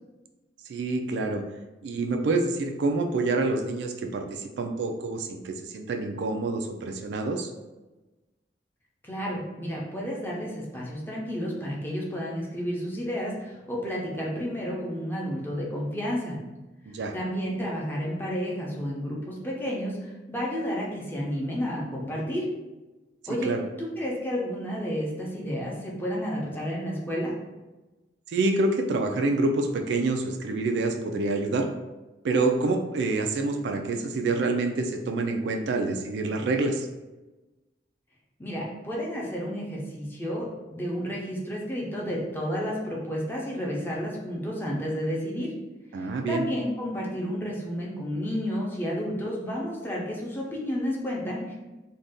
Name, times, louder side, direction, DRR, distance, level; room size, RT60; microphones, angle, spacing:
voice 1, 0.7-1.5 1.8-7.5 16.9-17.1 23.4-23.6 28.3-31.7 32.2-36.9 45.9-46.4, right 3 dB, 75° right, 4 dB, 0.3 m, -27 dB
voice 2, 9.0-16.4 17.1-22.5 23.3-27.3 38.4-45.5 45.9-51.5, equal, 10° left, -4 dB, 0.6 m, -31 dB
2.6 x 2.3 x 3.5 m, 1.1 s
head